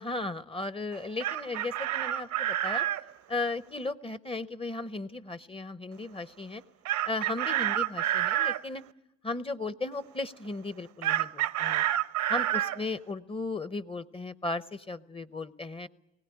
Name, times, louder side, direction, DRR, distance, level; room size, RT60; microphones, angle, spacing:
voice 1, 0.0-2.8 3.3-6.6 7.0-8.8 9.2-11.8 12.3-15.9, left 3 dB, 20° left, 15 dB, 0.7 m, -36 dB
Chicken rooster, 0.9-3.0 6.9-8.6 11.0-12.8, right 12 dB, 70° right, 0.7 m, -28 dB
20.0 x 17.0 x 9.9 m, 0.99 s
supercardioid pair, 70°, 30 cm